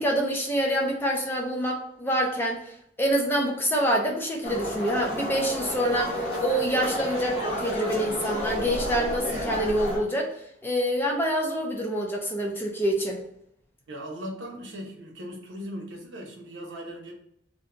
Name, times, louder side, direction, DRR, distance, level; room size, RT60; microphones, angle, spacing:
voice 1, 0.0-2.6 3.0-10.3 10.6-13.2, right 1 dB, 10° left, 0 dB, 0.5 m, -26 dB
sound 1, 4.4-10.0, left 1 dB, 30° left, 1.3 m, -31 dB
voice 2, 13.9-17.1, equal, 85° right, 0 dB, 0.9 m, -38 dB
2.7 x 2.3 x 3.7 m, 0.72 s
head